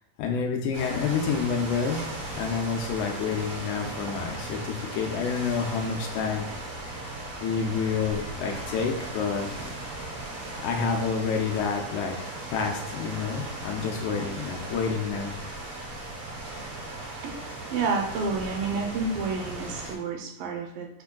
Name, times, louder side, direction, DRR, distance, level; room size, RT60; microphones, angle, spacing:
voice 1, 0.2-2.0 2.3-6.4 7.4-9.5 10.6-15.3, left 5 dB, 80° left, 1 dB, 1.8 m, -28 dB
sound 1, 0.7-19.9, right 2 dB, 55° right, 1.6 m, -37 dB
voice 2, 17.7-20.9, right 4 dB, 80° right, 2 dB, 2.3 m, -29 dB
5.8 x 3.4 x 2.2 m, 0.82 s
omnidirectional pair, 4.0 m